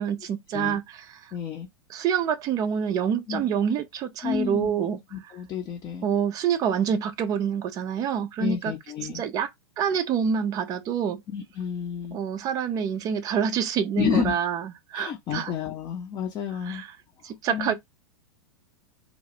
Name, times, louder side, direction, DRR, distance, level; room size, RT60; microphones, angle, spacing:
voice 1, 0.0-1.3 1.9-5.3 6.0-8.7 9.1-9.5 9.8-11.2 12.1-15.5 16.6-17.0 17.2-17.7, right 8 dB, 25° right, 0.4 m, -27 dB
voice 2, 1.3-1.7 3.3-3.4 4.2-6.1 8.4-9.2 11.3-12.2 14.0-14.3 14.9-16.8 17.5-17.7, left 8 dB, 25° left, 0.5 m, -30 dB
2.3 x 2.0 x 2.7 m
figure-of-eight pair, 95°, 13 cm